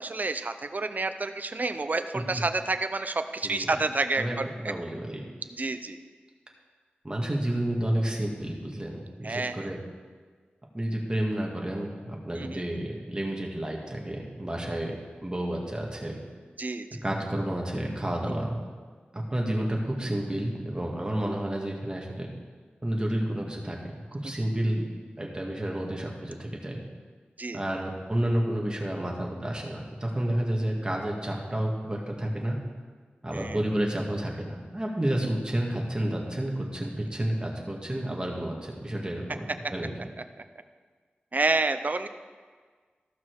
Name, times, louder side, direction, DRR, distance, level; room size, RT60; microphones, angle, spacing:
voice 1, 0.0-4.5 5.6-6.0 9.2-9.6 12.4-12.6 16.6-17.0 27.4-27.6 33.3-33.6 41.3-42.1, right 3 dB, 50° right, 9 dB, 0.6 m, -29 dB
voice 2, 3.4-3.8 4.2-4.4 4.6-5.2 7.0-9.8 10.7-14.9 15.2-16.2 17.0-18.6 19.1-22.3 22.8-23.8 24.1-24.8 25.2-26.8 27.5-32.6 33.2-40.1, right 1 dB, 25° right, -1 dB, 2.0 m, -30 dB
14.5 x 5.9 x 4.8 m, 1.5 s
wide cardioid pair, 60°, 4 cm